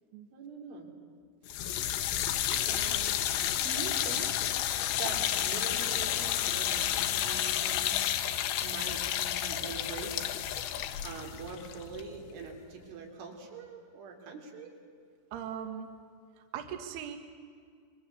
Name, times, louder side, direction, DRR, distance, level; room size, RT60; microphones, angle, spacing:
voice 1, 0.3-0.9 2.6-3.2 3.6-4.3 5.0-8.0 8.6-10.7 11.0-14.8, right 4 dB, 85° right, 1 dB, 6.0 m, -43 dB
sound 1, 1.5-12.6, left 11 dB, 75° left, 3.2 m, -31 dB
voice 2, 15.3-15.9 16.5-17.2, right 9 dB, 65° right, 6 dB, 3.2 m, -39 dB
27.5 x 23.0 x 8.3 m, 2.1 s
omnidirectional pair, 5.4 m